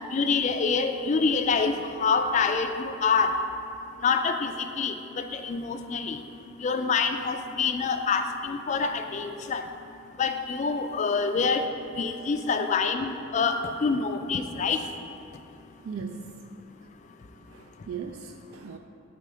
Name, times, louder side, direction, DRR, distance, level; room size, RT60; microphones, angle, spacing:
voice 1, 0.1-3.3 4.0-6.2 6.6-9.6 10.2-11.6 12.0-13.0 13.3-14.8, left 5 dB, 35° left, 7 dB, 0.3 m, -26 dB
voice 2, 15.8-16.3 17.4-18.8, right 6 dB, 85° right, 5 dB, 0.3 m, -38 dB
6.9 x 4.1 x 4.9 m, 2.7 s
head